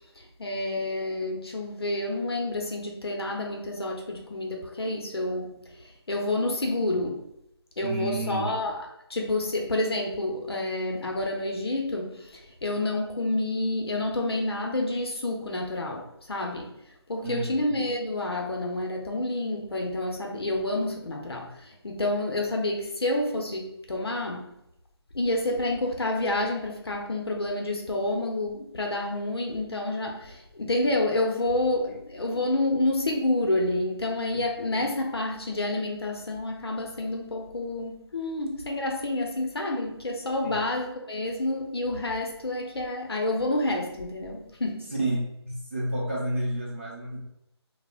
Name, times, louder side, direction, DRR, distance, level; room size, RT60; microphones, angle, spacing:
voice 1, 0.4-5.8 6.1-7.3 7.8-8.7 9.1-16.8 17.1-24.6 25.1-44.9, left 2 dB, 65° left, 1 dB, 0.6 m, -29 dB
voice 2, 7.8-8.6 17.2-17.6 31.9-32.0 40.4-40.6 45.0-47.2, right 1 dB, 25° right, -6 dB, 0.6 m, -30 dB
2.4 x 2.0 x 3.4 m, 0.83 s
figure-of-eight pair, 175°, 14 cm